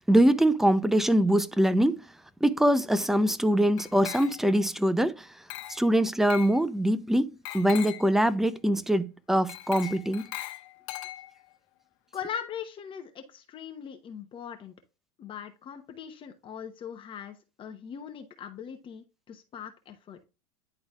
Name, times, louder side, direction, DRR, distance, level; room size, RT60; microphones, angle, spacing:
voice 1, 0.1-2.0 2.4-5.3 5.7-10.2, right 1 dB, ahead, 0.5 m, -23 dB
Glass, 3.8-4.6 5.5-5.9 6.3-6.6 7.5-8.1 9.5-11.5, left 15 dB, 60° left, 1.1 m, -40 dB
voice 2, 12.1-14.7 15.2-20.2, left 8 dB, 30° left, 1.0 m, -40 dB
10.5 x 3.9 x 2.4 m
supercardioid pair, 125°, 17 cm